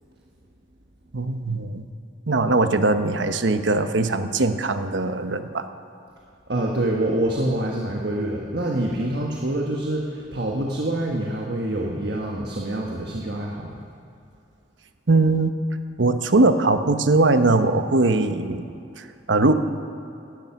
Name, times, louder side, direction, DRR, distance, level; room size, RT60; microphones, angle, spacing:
voice 1, 1.1-1.8 2.3-5.7 15.1-15.5 16.0-18.6 19.0-19.5, right 2 dB, 80° right, 9 dB, 0.9 m, -20 dB
voice 2, 6.5-13.7, right 1 dB, 60° right, -1 dB, 1.4 m, -26 dB
18.0 x 12.0 x 5.9 m, 2.6 s
head